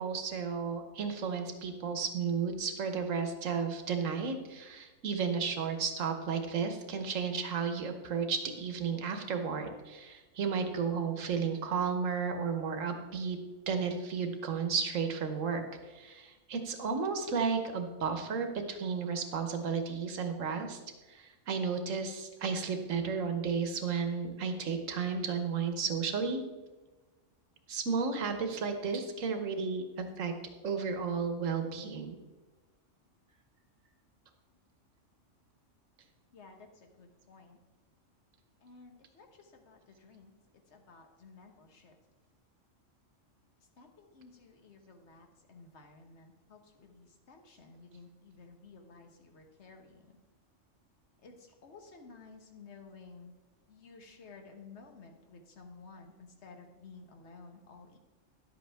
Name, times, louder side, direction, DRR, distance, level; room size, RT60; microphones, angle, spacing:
voice 1, 0.0-13.4 13.7-15.6 15.9-20.8 21.1-26.4 27.7-30.3 30.6-32.2, right 5 dB, 90° right, 7 dB, 1.3 m, -33 dB
voice 2, 36.3-37.6 38.6-40.3 40.7-42.0 43.8-50.2 51.2-53.3 53.7-58.0, left 4 dB, 65° left, 4 dB, 1.3 m, -54 dB
11.0 x 7.9 x 3.4 m, 1.2 s
omnidirectional pair, 1.3 m